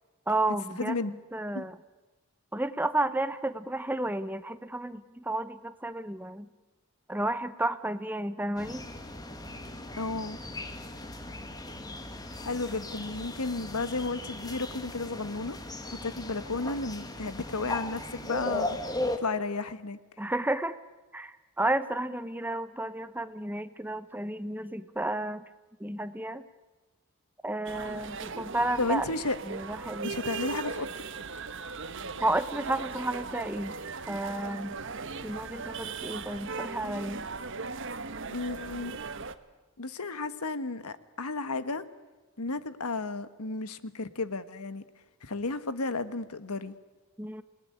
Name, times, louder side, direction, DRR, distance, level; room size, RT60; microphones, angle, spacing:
voice 1, 0.3-1.8 2.5-6.5 7.1-8.8 20.2-20.7 21.1-25.4 25.8-26.4 27.4-29.1 29.4-30.1 32.2-33.7 34.1-34.7 35.2-37.3 47.2-47.4, right 2 dB, 10° right, 13 dB, 0.8 m, -32 dB
voice 2, 0.8-1.1 1.5-1.7 10.0-10.4 12.4-15.6 15.9-18.8 19.2-20.0 28.8-29.4 30.0-30.9 38.3-39.0 39.8-41.8 42.4-44.8 45.2-46.7, left 3 dB, 85° left, 13 dB, 1.4 m, -33 dB
sound 1, 8.6-19.2, left 1 dB, 15° left, 1.8 m, -37 dB
sound 2, 27.7-39.4, right 4 dB, 55° right, 1.3 m, -38 dB
28.0 x 19.0 x 10.0 m, 1.2 s
head